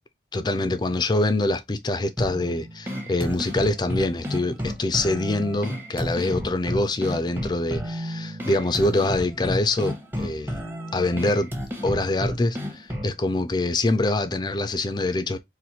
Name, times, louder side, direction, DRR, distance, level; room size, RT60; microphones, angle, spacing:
voice 1, 0.3-10.6 10.9-11.5 11.8-15.4, left 2 dB, 25° left, 0.4 m, -25 dB
sound 1, 2.2-13.2, equal, 10° right, 0.8 m, -32 dB
4.2 x 2.6 x 2.8 m
head